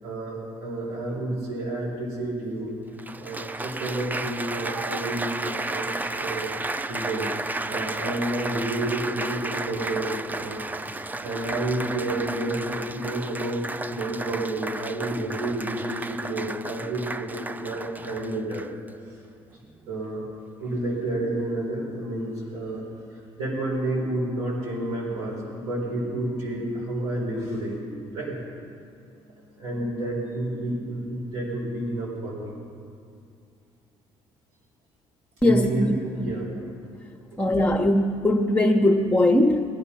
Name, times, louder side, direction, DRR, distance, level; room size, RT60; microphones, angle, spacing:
voice 1, 0.0-2.7 3.1-6.5 6.9-7.3 7.7-10.6 10.9-13.6 13.9-18.7 19.9-20.2 20.6-23.0 23.4-28.4 29.6-32.6 35.4-36.5 37.3-37.4, right 1 dB, 85° right, -4 dB, 4.4 m, -30 dB
Applause, 2.2-2.3 3.0-18.9 19.6-20.0, right 2 dB, 15° right, 0.4 m, -33 dB
voice 2, 35.4-35.9 36.2-36.3 37.4-39.6, left 1 dB, 10° left, 0 dB, 1.2 m, -20 dB
21.5 x 10.5 x 5.7 m, 2.4 s
cardioid pair, 85°, 11 cm